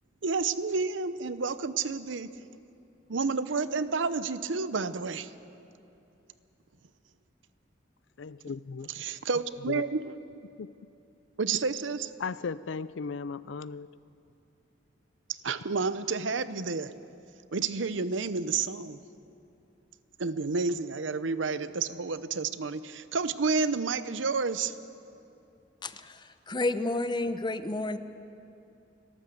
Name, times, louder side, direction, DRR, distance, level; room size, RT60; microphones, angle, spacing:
voice 1, 0.2-2.3 3.1-5.3 8.9-10.0 11.4-12.1 15.3-16.9 17.5-19.0 20.2-24.7, right 4 dB, 80° right, 14 dB, 0.8 m, -30 dB
voice 2, 8.2-8.9 9.7-9.8 10.6-10.9 12.2-13.9, left 5 dB, 80° left, 18 dB, 0.5 m, -36 dB
voice 3, 25.8-28.0, left 2 dB, 25° left, 11 dB, 0.8 m, -31 dB
29.5 x 12.5 x 7.8 m, 2.8 s
head